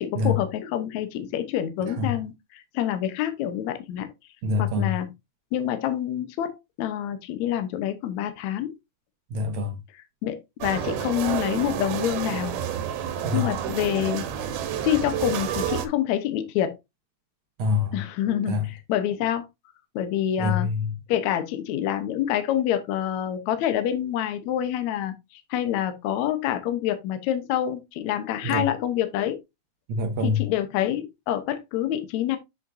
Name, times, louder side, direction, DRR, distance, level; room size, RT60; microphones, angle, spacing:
voice 1, 0.0-4.1 4.6-5.1 5.5-6.5 6.8-8.7 10.2-12.6 13.3-14.3 14.8-16.8 17.9-19.5 20.0-20.7 21.1-29.4 30.2-32.4, left 11 dB, 70° left, 1.9 m, -27 dB
voice 2, 4.4-5.0 9.3-9.8 13.2-13.5 17.6-18.0 18.5-18.6 20.4-21.0 28.4-28.7 29.9-30.5, left 3 dB, 65° right, 2.3 m, -25 dB
sound 1, 10.6-15.9, right 9 dB, 90° right, 2.9 m, -29 dB
7.9 x 6.3 x 2.6 m
omnidirectional pair, 4.2 m